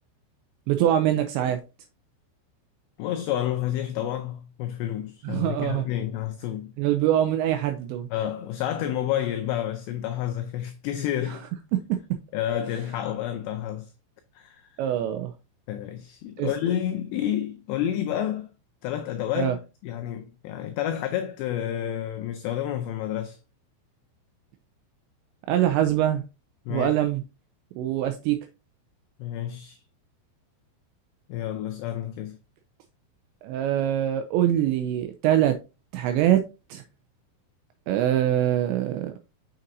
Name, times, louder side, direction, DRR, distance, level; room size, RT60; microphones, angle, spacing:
voice 1, 0.7-1.6 5.2-5.9 6.8-8.1 11.3-11.4 11.7-11.8 14.8-15.3 16.4-16.5 19.4-19.6 25.5-26.2 26.7-27.2 27.8-28.4 33.4-35.6 35.9-36.8 37.9-39.1, right 11 dB, 85° right, 2.6 m, -24 dB
voice 2, 3.0-6.7 8.1-11.5 12.3-13.9 14.3-14.8 15.7-18.5 18.8-23.4 26.7-26.9 29.2-29.8 31.3-32.4, left 11 dB, 90° left, 2.4 m, -30 dB
7.3 x 6.6 x 2.7 m
omnidirectional pair, 5.7 m